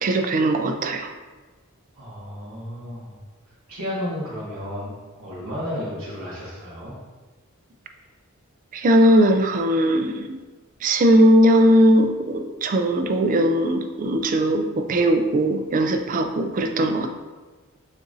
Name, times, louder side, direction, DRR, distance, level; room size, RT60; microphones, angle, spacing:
voice 1, 0.0-1.1 8.7-10.4 10.8-17.1, equal, 35° right, 6 dB, 0.3 m, -19 dB
voice 2, 1.9-3.1 3.7-4.9 5.2-7.0, left 1 dB, 80° right, -9 dB, 1.1 m, -32 dB
6.6 x 2.5 x 2.6 m, 1.3 s
head